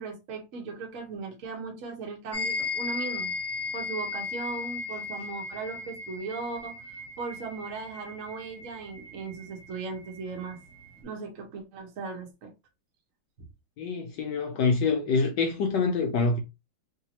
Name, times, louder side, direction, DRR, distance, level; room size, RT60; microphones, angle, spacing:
voice 1, 0.0-3.3 3.7-6.8 7.2-10.6 11.0-12.5, right 4 dB, 50° right, 1.1 m, -37 dB
sound 1, 2.3-11.0, left 4 dB, 40° left, 1.1 m, -37 dB
voice 2, 13.8-16.4, left 4 dB, 75° left, 1.0 m, -26 dB
3.3 x 2.7 x 2.8 m
omnidirectional pair, 2.4 m